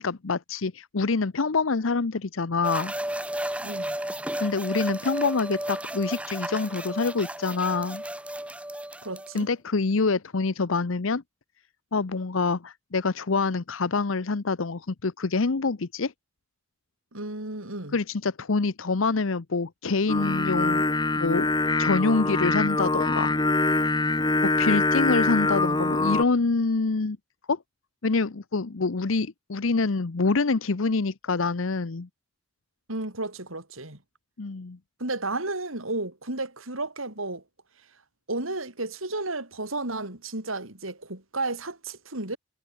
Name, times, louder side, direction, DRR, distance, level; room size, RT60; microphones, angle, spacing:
voice 1, 0.0-2.9 4.4-8.0 9.3-11.2 11.9-16.1 17.9-20.9 21.1-21.5 21.8-23.3 24.4-27.2 27.5-27.6 28.0-32.1 34.4-34.8, left 4 dB, 80° left, 0.8 m, -26 dB
sound 1, 2.6-9.4, right 1 dB, 5° right, 4.2 m, -33 dB
voice 2, 3.6-4.0 9.0-9.5 17.1-18.0 32.9-34.0 35.0-37.4 38.3-42.4, right 2 dB, 90° right, 5.9 m, -33 dB
Singing, 20.1-26.2, left 2 dB, 20° left, 1.6 m, -24 dB
head